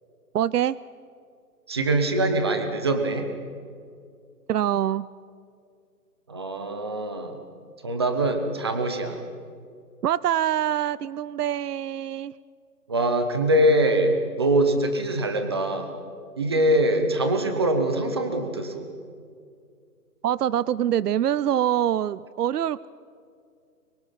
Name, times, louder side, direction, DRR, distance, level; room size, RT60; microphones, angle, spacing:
voice 1, 0.3-0.8 4.5-5.1 10.0-12.3 20.2-22.9, right 10 dB, 75° right, 20 dB, 0.6 m, -24 dB
voice 2, 1.7-3.3 6.3-7.4 7.8-9.2 12.9-15.9 16.4-18.9, right 1 dB, 15° right, 7 dB, 0.9 m, -23 dB
24.5 x 22.5 x 5.9 m, 2.3 s
hypercardioid pair, 170°, 47 cm